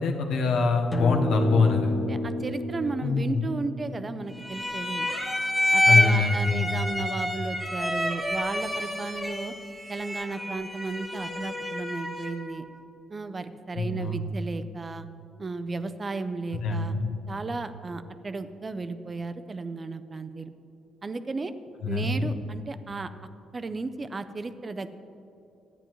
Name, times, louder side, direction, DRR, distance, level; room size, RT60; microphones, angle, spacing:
voice 1, 0.0-2.0 3.0-3.4 5.9-6.6 13.8-14.2 16.6-17.1 21.8-22.3, left 4 dB, 80° left, 2 dB, 1.0 m, -24 dB
sound 1, 0.9-5.5, left 1 dB, 30° left, 0.9 m, -33 dB
voice 2, 2.1-5.1 5.7-9.5 9.9-12.7 13.1-15.1 15.4-17.0 17.3-20.5 21.0-21.5 21.9-23.1 23.5-24.9, right 3 dB, 30° right, 11 dB, 0.5 m, -34 dB
sound 2, 4.4-12.5, left 1 dB, 10° left, 1.6 m, -28 dB
13.5 x 9.2 x 3.0 m, 2.8 s
cardioid pair, 90°, 0 cm